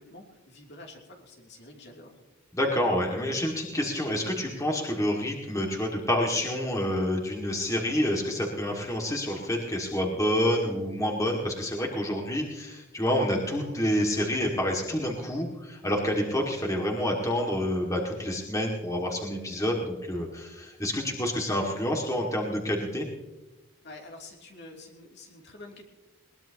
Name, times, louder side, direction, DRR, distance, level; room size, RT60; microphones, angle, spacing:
voice 1, 0.0-2.1 23.8-25.8, left 2 dB, 55° left, 0 dB, 2.9 m, -47 dB
voice 2, 2.5-23.1, equal, 15° left, 0 dB, 2.1 m, -28 dB
21.5 x 20.0 x 2.9 m, 1.1 s
head